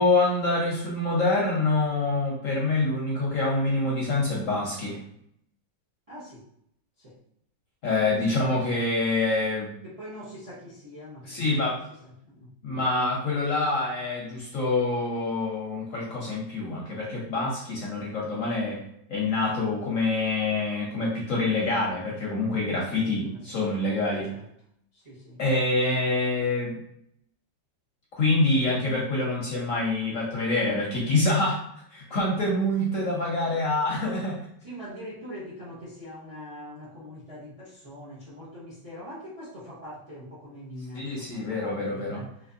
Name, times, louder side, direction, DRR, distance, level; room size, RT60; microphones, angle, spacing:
voice 1, 0.0-5.0 7.8-9.7 11.3-11.8 12.6-18.8 19.1-24.3 25.4-26.7 28.2-31.6 31.9-34.4 40.9-42.2, left 2 dB, 65° left, -3 dB, 0.8 m, -26 dB
voice 2, 6.1-6.5 7.0-7.2 8.3-8.4 9.8-11.6 12.0-12.5 23.0-24.0 24.3-24.4 24.9-25.4 25.9-26.0 34.6-42.5, equal, 65° right, -8 dB, 0.3 m, -43 dB
3.2 x 2.9 x 2.6 m, 0.71 s
omnidirectional pair, 2.1 m